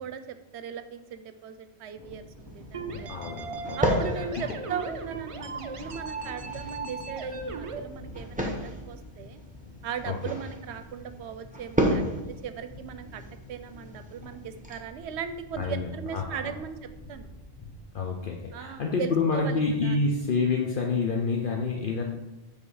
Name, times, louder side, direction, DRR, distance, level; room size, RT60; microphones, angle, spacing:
voice 1, 0.0-3.3 3.8-9.4 9.8-12.0 12.4-13.2 13.5-17.3 18.5-20.1, right 7 dB, 80° right, 10 dB, 0.9 m, -38 dB
Thunder, 1.9-20.3, left 1 dB, 25° left, 0.9 m, -48 dB
sound 1, 2.4-14.8, equal, 10° right, 0.8 m, -34 dB
sound 2, 2.7-7.8, right 4 dB, 50° right, 0.4 m, -38 dB
voice 2, 3.1-3.9 4.1-4.4 10.1-10.4 15.6-16.5 17.9-22.0, left 4 dB, 55° left, 1 dB, 0.7 m, -28 dB
7.7 x 3.4 x 4.8 m, 1.0 s
omnidirectional pair, 1.1 m